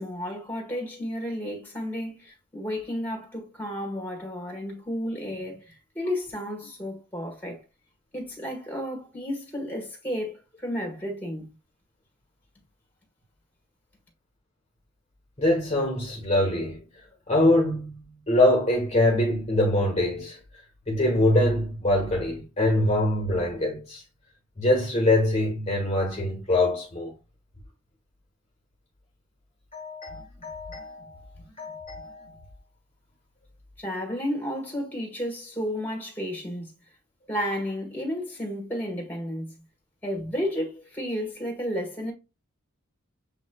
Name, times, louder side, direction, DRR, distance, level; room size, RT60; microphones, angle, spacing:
voice 1, 0.0-7.6 8.1-11.5 33.8-36.7 37.3-39.6 40.0-42.1, equal, 10° left, 1.5 m, -32 dB
voice 2, 15.4-16.8 17.3-18.0 18.3-20.4 20.9-24.0 24.6-27.1 29.7-31.2 31.6-32.4, left 1 dB, 30° left, 1.0 m, -24 dB
7.1 x 3.1 x 2.2 m
head